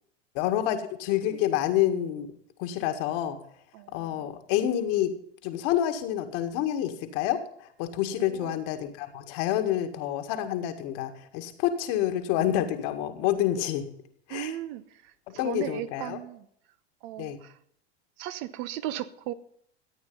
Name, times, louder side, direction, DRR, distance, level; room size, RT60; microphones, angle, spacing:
voice 1, 0.4-2.3 2.6-3.4 3.9-5.2 5.4-13.9 14.3-14.6 15.3-16.2 17.2-17.4, left 11 dB, 60° left, 2.0 m, -28 dB
voice 2, 3.7-4.3 8.1-8.6 14.3-14.8 15.3-16.5 17.0-17.5 18.2-19.3, right 13 dB, 60° right, 1.1 m, -36 dB
14.0 x 8.8 x 5.5 m
hypercardioid pair, 90°, 32 cm